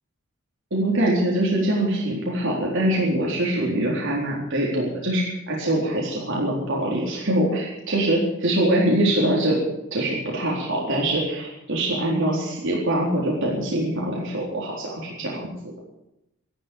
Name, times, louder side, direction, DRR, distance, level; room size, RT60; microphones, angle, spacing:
voice 1, 0.7-9.6 9.9-15.5, right 1 dB, 60° right, -4 dB, 4.0 m, -23 dB
14.0 x 11.5 x 8.8 m, 0.84 s
head